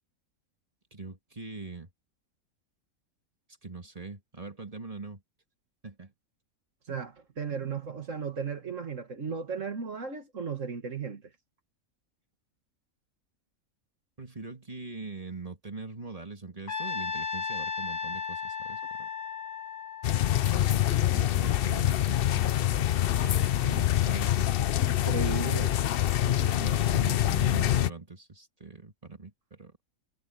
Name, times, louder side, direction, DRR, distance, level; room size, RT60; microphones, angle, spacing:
voice 1, 0.9-1.9 3.6-5.2 5.8-6.1 14.2-19.1 20.4-24.7 26.2-29.7, right 3 dB, 25° right, 2.2 m, -42 dB
voice 2, 6.9-11.2 23.7-23.8 24.8-25.8, right 5 dB, 55° right, 2.2 m, -35 dB
Trumpet, 16.7-20.9, left 6 dB, 45° left, 1.7 m, -35 dB
sound 1, 20.0-27.9, left 12 dB, 65° left, 0.5 m, -25 dB
omnidirectional pair, 1.5 m